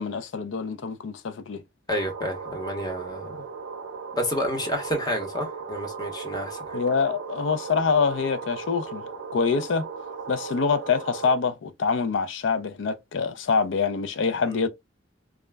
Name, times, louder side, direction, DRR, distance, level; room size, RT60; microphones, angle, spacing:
voice 1, 0.0-1.6 6.7-9.0 9.3-9.8 10.3-14.7, left 5 dB, 70° left, 0.4 m, -25 dB
voice 2, 1.9-3.3 4.1-6.8 14.4-14.6, equal, 20° left, 0.8 m, -30 dB
sound 1, 1.9-11.4, right 5 dB, 80° right, 0.5 m, -37 dB
2.3 x 2.0 x 3.2 m
head